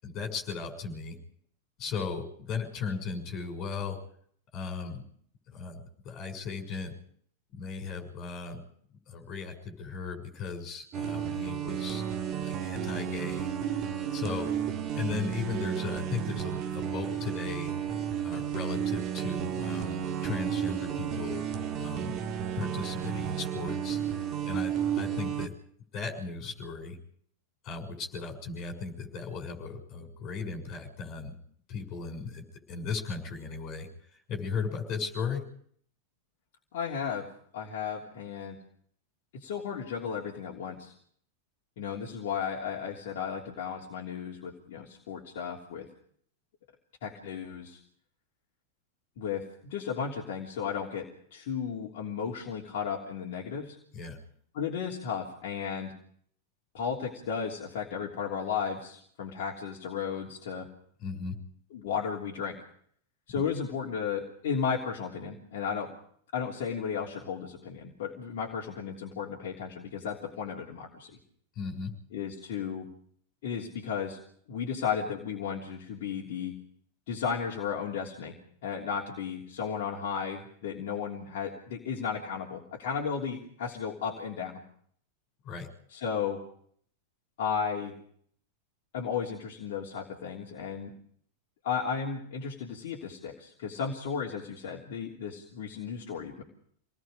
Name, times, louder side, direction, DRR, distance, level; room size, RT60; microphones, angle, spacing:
voice 1, 0.0-1.2 1.8-4.0 4.5-5.0 5.5-6.9 7.5-8.6 9.1-12.0 12.4-13.5 14.1-14.5 14.9-17.7 18.2-21.5 21.8-22.1 22.6-24.0 24.4-25.5 25.9-27.0 27.6-31.3 31.7-35.4 53.9-54.2 61.0-61.4 71.6-71.9 85.4-85.7, left 5 dB, 35° left, 4 dB, 6.4 m, -36 dB
sound 1, 10.9-25.5, right 9 dB, 35° right, 1.8 m, -32 dB
voice 2, 36.7-37.3 37.5-38.6 39.3-40.9 41.8-45.9 47.0-47.8 49.2-53.8 54.5-55.9 56.7-60.7 61.7-62.6 63.3-65.9 66.3-71.1 72.1-72.9 73.4-74.2 74.5-76.6 77.1-78.4 78.6-84.6 85.9-86.4 87.4-87.9 88.9-90.9 91.6-96.4, left 6 dB, 55° left, -2 dB, 3.2 m, -34 dB
27.5 x 19.0 x 5.1 m, 0.62 s
figure-of-eight pair, 90°, 0 cm